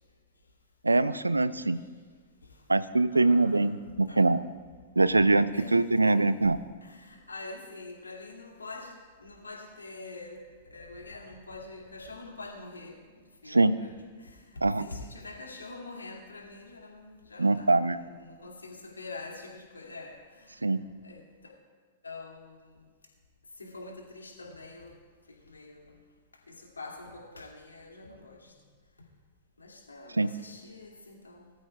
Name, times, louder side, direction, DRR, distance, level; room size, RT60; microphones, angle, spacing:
voice 1, 0.8-1.8 2.7-4.4 5.0-6.6 13.5-13.7 14.6-14.8 17.4-18.0 20.6-20.8 30.2-30.3, right 2 dB, 85° right, 15 dB, 0.5 m, -23 dB
voice 2, 3.1-3.8 4.1-4.3 5.5-6.3 6.8-20.7 21.0-21.5 22.0-22.9 23.6-25.0 25.3-26.0 26.5-28.5 29.6-31.5, left 3 dB, 80° left, 0 dB, 2.6 m, -45 dB
21.0 x 13.0 x 2.4 m, 1.5 s
figure-of-eight pair, 105°, 0 cm